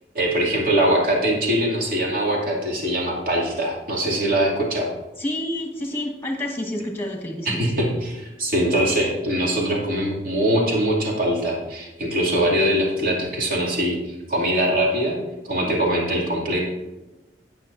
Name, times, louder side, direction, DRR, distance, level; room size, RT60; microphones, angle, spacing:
voice 1, 0.1-4.9 7.5-15.2 15.5-16.7, right 1 dB, 50° right, -3 dB, 2.6 m, -22 dB
voice 2, 5.2-7.6, left 1 dB, 15° left, 1 dB, 1.6 m, -29 dB
17.0 x 6.6 x 2.6 m, 1.1 s
head